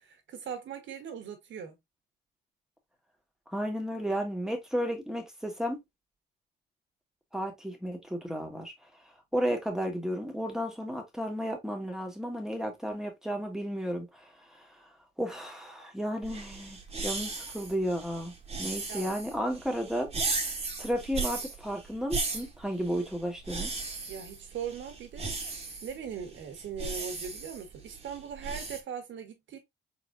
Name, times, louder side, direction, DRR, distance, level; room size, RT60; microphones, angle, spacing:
voice 1, 0.0-1.7 18.9-19.1 24.1-25.5 25.8-29.6, right 7 dB, 70° right, 1.6 m, -40 dB
voice 2, 3.5-5.8 7.3-8.7 9.3-14.3 15.2-20.1 20.8-23.7, equal, ahead, 1.8 m, -33 dB
sound 1, 16.2-28.8, right 3 dB, 30° right, 1.5 m, -37 dB
4.1 x 4.1 x 2.5 m
cardioid pair, 90°, 20 cm